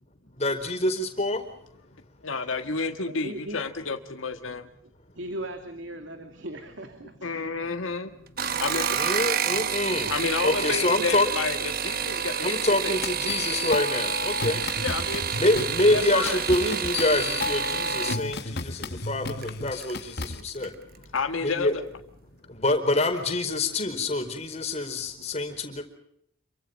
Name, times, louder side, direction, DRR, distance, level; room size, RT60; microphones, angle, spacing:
voice 1, 0.4-1.4 8.5-8.6 8.9-10.1 10.4-11.3 12.4-14.6 15.3-20.7 21.4-21.7 22.5-25.8, left 2 dB, 30° left, 5 dB, 4.4 m, -26 dB
voice 2, 2.2-4.7 7.2-8.1 8.6-9.1 10.1-13.0 14.8-15.3 15.9-16.5 17.7-19.1 21.1-21.8, left 4 dB, 80° left, 5 dB, 1.7 m, -31 dB
voice 3, 3.1-3.7 5.1-7.4, right 1 dB, 65° right, 6 dB, 2.6 m, -38 dB
sound 1, 8.3-18.2 19.4-19.9 20.3-20.8 21.0-21.1, right 8 dB, 45° right, 1.1 m, -29 dB
sound 2, 13.0-20.4, left 4 dB, 50° left, 1.3 m, -33 dB
28.0 x 24.0 x 5.3 m, 0.74 s
head